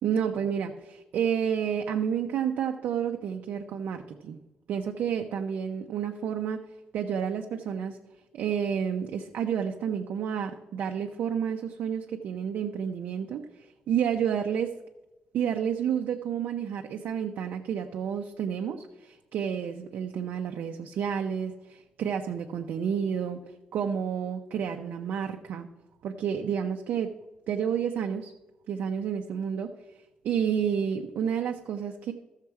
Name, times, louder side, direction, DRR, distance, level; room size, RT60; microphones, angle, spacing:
voice 1, 0.0-4.4 4.7-6.6 6.9-8.0 8.3-14.8 15.3-23.4 23.7-25.7 26.0-27.2 27.5-28.3 28.7-29.7 30.2-32.1, right 8 dB, 80° right, 4 dB, 0.6 m, -30 dB
14.0 x 6.6 x 4.7 m, 1.1 s
cardioid pair, 145°, 3 cm